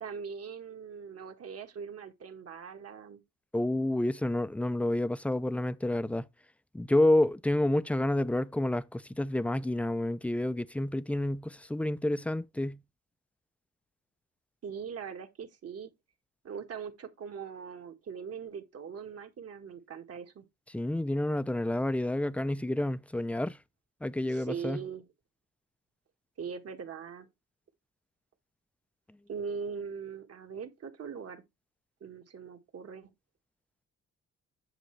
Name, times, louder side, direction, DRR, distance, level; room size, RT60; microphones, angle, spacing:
voice 1, 0.0-3.2 14.6-15.9 16.4-20.5 24.3-25.1 26.4-27.3 29.3-31.4 32.0-33.1, right 6 dB, 50° right, 1.6 m, -41 dB
voice 2, 3.5-6.3 6.7-12.8 20.7-23.6 24.0-24.8, left 1 dB, 5° left, 0.4 m, -29 dB
7.9 x 7.0 x 3.2 m
cardioid pair, 90°, 30 cm